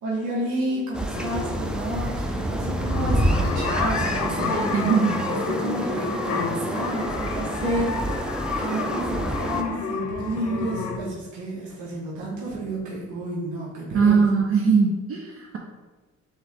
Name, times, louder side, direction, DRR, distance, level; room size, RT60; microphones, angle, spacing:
voice 1, 0.0-14.3, right 1 dB, 80° right, -5 dB, 1.4 m, -31 dB
sound 1, 0.9-9.6, equal, 5° right, 0.4 m, -28 dB
sound 2, 1.1-11.0, left 4 dB, 60° left, 0.7 m, -30 dB
voice 2, 4.7-5.1 13.9-15.6, right 5 dB, 50° right, 1 dB, 0.6 m, -20 dB
3.8 x 3.7 x 3.5 m, 1.2 s
cardioid pair, 90°, 30 cm